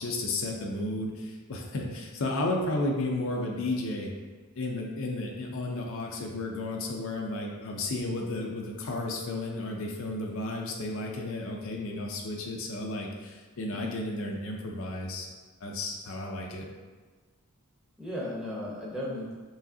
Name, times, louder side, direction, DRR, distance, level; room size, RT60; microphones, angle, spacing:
voice 1, 0.0-4.1 4.6-15.3 15.6-16.7, left 2 dB, 60° left, 0 dB, 0.5 m, -33 dB
voice 2, 13.7-14.1 18.0-19.4, left 1 dB, 5° right, -6 dB, 0.8 m, -36 dB
4.8 x 3.1 x 2.7 m, 1.4 s
head